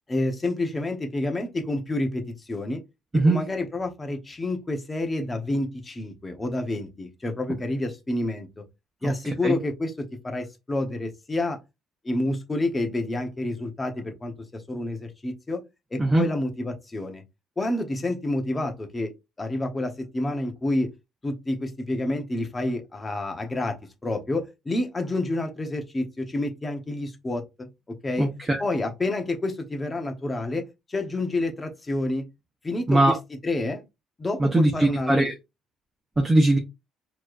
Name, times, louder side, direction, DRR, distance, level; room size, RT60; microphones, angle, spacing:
voice 1, 0.1-2.8 3.1-8.6 9.0-11.6 12.0-15.6 15.9-17.2 17.6-19.1 19.4-20.9 21.2-23.8 24.0-27.7 28.0-28.3 28.6-30.6 30.9-32.2 32.6-33.2 33.4-33.8 34.2-35.3, left 2 dB, 20° left, 1.0 m, -29 dB
voice 2, 28.2-28.6 32.9-33.1 34.4-35.3 36.2-36.6, right 2 dB, 15° right, 0.8 m, -20 dB
4.4 x 3.1 x 2.5 m
cardioid pair, 105°, 0 cm